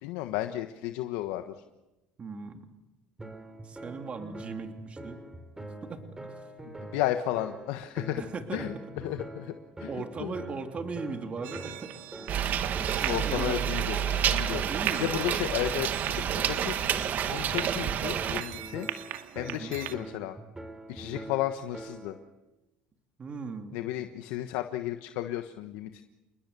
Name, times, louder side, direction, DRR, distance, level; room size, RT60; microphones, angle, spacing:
voice 1, 0.0-1.5 6.7-8.2 8.5-10.4 13.1-14.0 14.3-14.6 15.0-16.7 17.2-18.9 19.3-20.4 20.9-22.2 23.7-26.0, left 13 dB, 80° left, 8 dB, 1.3 m, -33 dB
voice 2, 2.2-2.7 3.6-5.2 5.8-6.0 8.2-8.9 9.9-12.0 13.0-13.6 14.5-15.1 19.5-19.8 23.2-23.8, right 4 dB, 35° right, 5 dB, 3.1 m, -38 dB
sound 1, 3.2-22.3, right 2 dB, 15° right, 4.2 m, -44 dB
sound 2, 11.4-19.9, right 13 dB, 75° right, 2.2 m, -40 dB
sound 3, 12.3-18.4, right 9 dB, 50° right, 1.9 m, -29 dB
28.5 x 21.0 x 7.0 m, 0.99 s
supercardioid pair, 95°, 4 cm